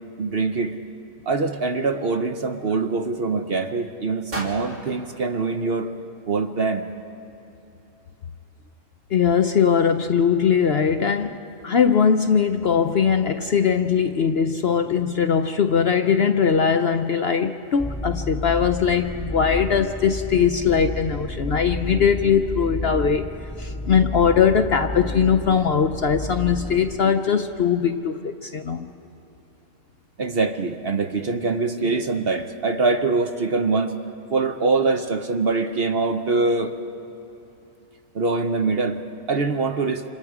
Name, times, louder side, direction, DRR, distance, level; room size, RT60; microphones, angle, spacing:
voice 1, 0.2-0.8 1.3-5.9 6.3-6.8 30.2-33.9 34.3-36.7 38.1-39.0 39.3-40.0, right 3 dB, 50° right, 6 dB, 0.9 m, -23 dB
sound 1, 4.3-6.4, right 1 dB, 70° right, 3.3 m, -38 dB
voice 2, 9.1-23.3 23.6-28.9, left 7 dB, 55° left, 7 dB, 0.7 m, -20 dB
sound 2, 17.8-27.0, left 1 dB, ahead, 0.9 m, -31 dB
29.5 x 27.0 x 4.9 m, 2.9 s
omnidirectional pair, 1.5 m